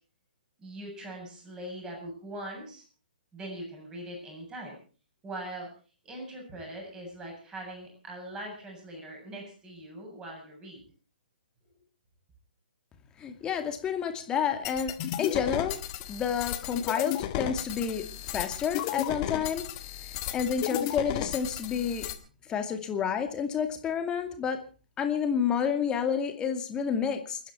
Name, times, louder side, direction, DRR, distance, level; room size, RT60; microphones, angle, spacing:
voice 1, 0.6-2.8 3.3-4.8 5.2-5.7 6.0-10.8, right 1 dB, 15° right, 0 dB, 7.8 m, -41 dB
voice 2, 13.2-15.8 16.1-18.0 18.3-19.7 20.0-22.1 22.5-24.6 25.0-27.4, left 7 dB, 15° left, 6 dB, 2.3 m, -29 dB
sound 1, 14.6-22.1, left 12 dB, 30° left, 1.7 m, -34 dB
29.0 x 10.0 x 4.5 m, 0.39 s
figure-of-eight pair, 125°, 5 cm